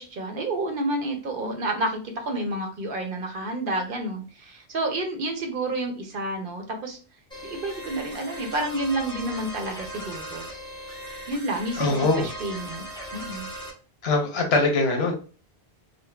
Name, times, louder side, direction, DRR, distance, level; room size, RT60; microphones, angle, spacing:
voice 1, 0.0-7.0 7.4-10.5 11.3-12.8 13.1-13.5, right 1 dB, 60° right, 4 dB, 0.8 m, -30 dB
sound 1, 7.3-13.7, right 1 dB, 5° left, 0.8 m, -38 dB
voice 2, 11.8-12.3 14.0-15.1, left 3 dB, 80° left, 2 dB, 1.1 m, -22 dB
3.7 x 2.0 x 2.2 m, 0.36 s
omnidirectional pair, 1.0 m